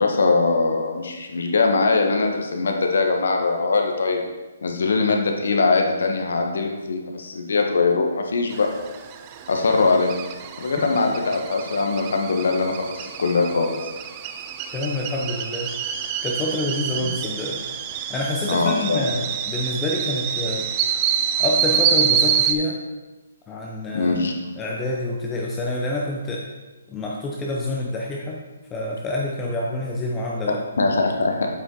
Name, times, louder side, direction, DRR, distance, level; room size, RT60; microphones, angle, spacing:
voice 1, 0.0-4.2 4.6-8.7 9.5-10.1 10.6-13.7 17.0-17.1 18.5-19.0 23.9-24.3 30.8-31.5, left 3 dB, 75° left, 2 dB, 1.3 m, -21 dB
sound 1, 8.5-22.5, right 8 dB, 25° right, 0.4 m, -27 dB
voice 2, 14.7-15.7 16.2-17.6 18.1-20.7 21.4-22.8 23.5-24.3 24.6-26.4 26.9-28.4 28.7-30.6, left 2 dB, 15° left, -2 dB, 0.7 m, -27 dB
7.8 x 5.4 x 3.9 m, 1.2 s
hypercardioid pair, 155°, 0 cm